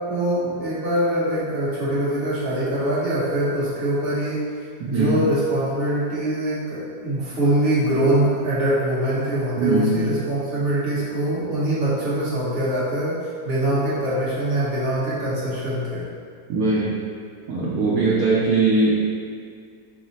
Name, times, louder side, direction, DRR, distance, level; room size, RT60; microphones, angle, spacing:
voice 1, 0.1-4.4 4.8-16.0, right 1 dB, 40° right, -10 dB, 1.2 m, -23 dB
voice 2, 4.8-5.2 9.6-10.0 16.5-17.0 17.5-18.9, right 3 dB, 70° right, -6 dB, 1.0 m, -20 dB
4.8 x 2.1 x 3.9 m, 2.1 s
omnidirectional pair, 1.8 m